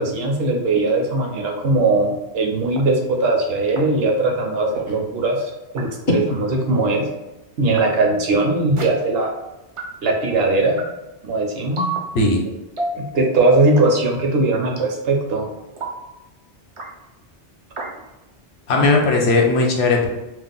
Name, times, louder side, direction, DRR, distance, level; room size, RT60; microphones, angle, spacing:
voice 1, 0.0-7.1 7.6-9.3 10.0-10.8 11.2-11.8 12.9-15.5, right 2 dB, 65° right, 1 dB, 0.8 m, -20 dB
sound 1, 0.8-0.9 1.8-1.9 2.8-2.9 3.8-3.9 4.8-4.9 5.8-5.9 6.8-6.9 7.8-7.9 8.8-8.9 9.8-9.9 10.8-10.9 11.8-12.0 12.8-13.0 13.8-14.0 14.8-15.0 15.8-16.0 16.8-16.9 17.8-17.9, right 3 dB, 50° right, 0.3 m, -27 dB
voice 2, 18.7-20.1, left 3 dB, 70° left, 0 dB, 0.9 m, -17 dB
2.6 x 2.0 x 3.8 m, 0.98 s
omnidirectional pair, 1.2 m